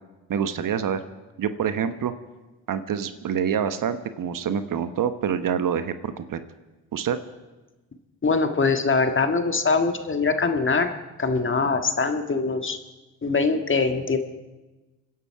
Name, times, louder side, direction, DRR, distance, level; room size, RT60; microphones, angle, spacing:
voice 1, 0.3-1.0 1.4-2.1 2.7-6.4 6.9-7.2, right 8 dB, 55° right, 11 dB, 1.2 m, -26 dB
voice 2, 8.2-10.9 11.2-12.8 13.2-14.2, left 4 dB, 30° left, 7 dB, 1.7 m, -23 dB
26.0 x 10.5 x 4.8 m, 1.1 s
supercardioid pair, 60°, 40 cm